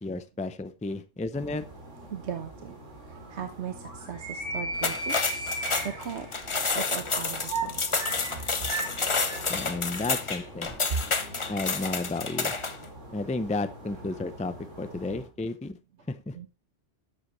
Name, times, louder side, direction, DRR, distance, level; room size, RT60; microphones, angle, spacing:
voice 1, 0.0-1.6 9.5-10.7 11.5-12.5 13.1-15.8 16.1-16.4, left 2 dB, 10° left, 11 dB, 0.3 m, -32 dB
sound 1, 1.3-15.3, right 2 dB, 80° right, 3.6 m, -39 dB
voice 2, 2.1-2.7 3.1-7.8 10.8-11.1 16.3-16.5, right 6 dB, 65° right, 7 dB, 1.2 m, -37 dB
sound 2, 4.7-12.8, left 4 dB, 30° left, 0.8 m, -29 dB
11.5 x 7.6 x 3.1 m, 0.27 s
omnidirectional pair, 1.3 m